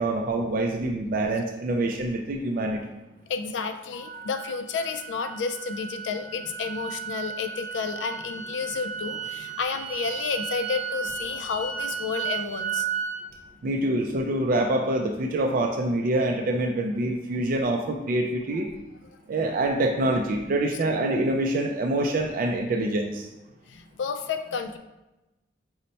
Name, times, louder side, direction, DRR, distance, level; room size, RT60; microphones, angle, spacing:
voice 1, 0.0-2.8 13.6-18.7 19.3-23.3, right 1 dB, 50° right, 2 dB, 0.3 m, -25 dB
voice 2, 3.3-12.9 19.1-19.2 23.7-24.8, left 5 dB, 70° left, 8 dB, 0.3 m, -31 dB
sound 1, 4.0-13.2, right 7 dB, 20° left, 0.6 m, -34 dB
5.4 x 2.1 x 4.0 m, 1.0 s
head